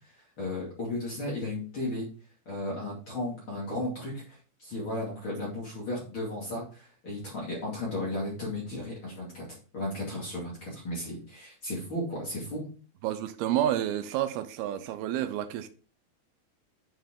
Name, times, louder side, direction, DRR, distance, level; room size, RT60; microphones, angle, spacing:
voice 1, 0.4-2.1 2.5-9.5 9.7-12.6, left 1 dB, 35° left, 2.9 m, -34 dB
voice 2, 13.0-15.7, right 11 dB, 90° right, 2.7 m, -29 dB
8.9 x 5.7 x 3.7 m
omnidirectional pair, 4.3 m